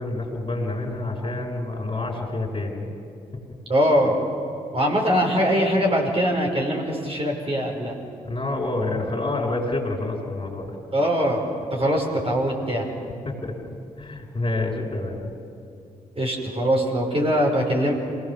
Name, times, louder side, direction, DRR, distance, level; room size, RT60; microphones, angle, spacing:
voice 1, 0.0-2.9 8.3-10.8 13.3-13.5 14.0-15.3, left 2 dB, 30° left, 0 dB, 5.7 m, -28 dB
voice 2, 3.7-4.2 4.7-7.9 10.9-11.4 11.7-12.9 16.2-17.9, equal, 30° right, 0 dB, 5.5 m, -22 dB
27.0 x 17.5 x 7.3 m, 2.6 s
hypercardioid pair, 40°, 18 cm